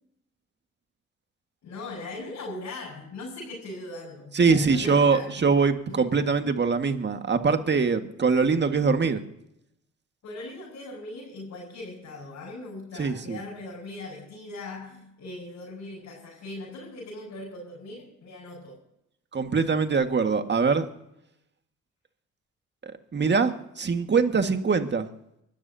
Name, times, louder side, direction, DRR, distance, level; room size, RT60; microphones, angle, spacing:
voice 1, 1.6-5.4 5.9-6.1 10.2-18.8, left 2 dB, 65° left, -5 dB, 6.6 m, -40 dB
voice 2, 4.3-9.2 13.0-13.4 19.3-20.9 22.8-25.1, right 5 dB, 35° right, 7 dB, 1.8 m, -23 dB
24.5 x 13.5 x 2.8 m, 0.79 s
supercardioid pair, 70°, 29 cm